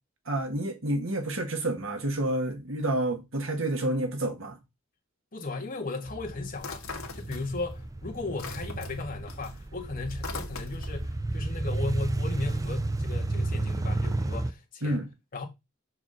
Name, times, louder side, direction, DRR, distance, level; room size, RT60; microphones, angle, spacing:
voice 1, 0.3-4.6 14.8-15.1, right 1 dB, 65° right, 1.7 m, -29 dB
voice 2, 5.3-6.8 7.1-15.0 15.3-15.4, left 3 dB, 45° left, 1.9 m, -36 dB
sound 1, 6.1-14.5, right 2 dB, 15° right, 0.4 m, -32 dB
sound 2, 6.6-7.8 8.1-11.0, left 4 dB, 85° left, 1.5 m, -41 dB
6.2 x 4.8 x 3.7 m
head